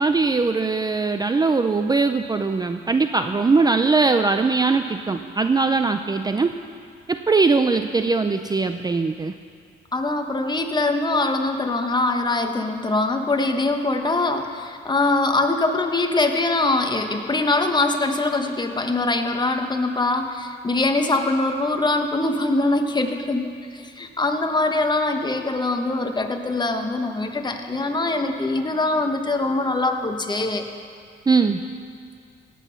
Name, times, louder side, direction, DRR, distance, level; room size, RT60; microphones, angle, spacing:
voice 1, 0.0-6.5 7.1-9.3 31.3-31.6, right 4 dB, 20° right, 8 dB, 0.5 m, -20 dB
voice 2, 9.9-30.6, left 2 dB, 20° left, 5 dB, 1.3 m, -23 dB
17.0 x 8.5 x 5.8 m, 2.2 s
cardioid pair, 90°, 20 cm